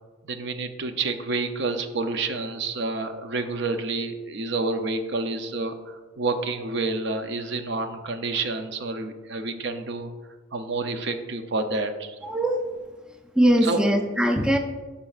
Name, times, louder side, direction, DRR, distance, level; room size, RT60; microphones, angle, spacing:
voice 1, 0.2-10.1 10.5-12.2 13.6-13.8, right 3 dB, 65° right, 7 dB, 0.6 m, -29 dB
voice 2, 12.2-12.6 13.4-14.6, equal, 5° right, 4 dB, 0.4 m, -21 dB
11.5 x 5.2 x 2.4 m, 1.3 s
head